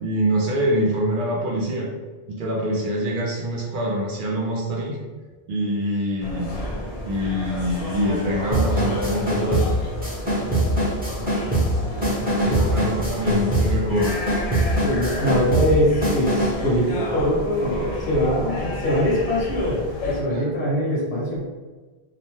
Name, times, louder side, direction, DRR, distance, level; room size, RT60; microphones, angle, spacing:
voice 1, 0.0-1.9 2.4-5.0 5.5-6.5 7.0-9.6 12.4-14.2 20.3-20.4, equal, 60° right, -2 dB, 0.6 m, -24 dB
sound 1, 6.2-20.2, left 1 dB, 45° left, 0.5 m, -31 dB
sound 2, 8.5-16.7, right 1 dB, 10° right, 0.7 m, -23 dB
voice 2, 14.8-21.4, equal, 75° left, -5 dB, 1.3 m, -22 dB
2.8 x 2.1 x 3.0 m, 1.3 s
omnidirectional pair, 1.1 m